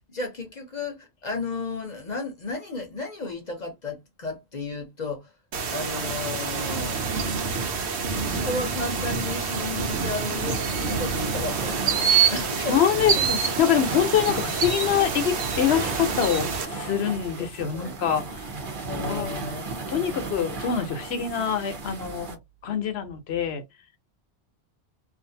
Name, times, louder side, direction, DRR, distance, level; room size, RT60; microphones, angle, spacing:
voice 1, 0.1-5.3 5.7-7.1 8.2-13.3 17.7-18.0 18.9-20.5, left 3 dB, 45° left, 0.8 m, -34 dB
sound 1, 5.5-16.6, right 6 dB, 90° right, 1.0 m, -27 dB
sound 2, 10.4-22.3, right 3 dB, 55° right, 0.9 m, -35 dB
voice 2, 12.1-18.5 19.1-19.3 19.9-23.6, left 9 dB, 75° left, 1.0 m, -25 dB
2.5 x 2.5 x 2.6 m
omnidirectional pair, 1.1 m